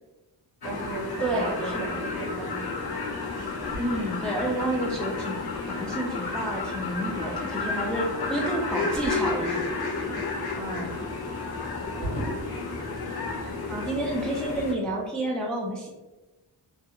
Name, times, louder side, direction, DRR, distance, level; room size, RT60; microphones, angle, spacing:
sound 1, 0.6-14.7, left 3 dB, 55° left, 0.7 m, -32 dB
voice 1, 0.6-2.9 10.6-11.1 12.0-12.2, right 3 dB, 80° right, 2 dB, 0.6 m, -36 dB
sound 2, 0.7-13.0 13.3-14.9, right 1 dB, 85° left, 1.3 m, -44 dB
voice 2, 1.2-1.8 3.8-9.7 13.7-15.9, right 1 dB, ahead, -2 dB, 0.3 m, -30 dB
2.4 x 2.3 x 2.8 m, 1.1 s
wide cardioid pair, 70°, 45 cm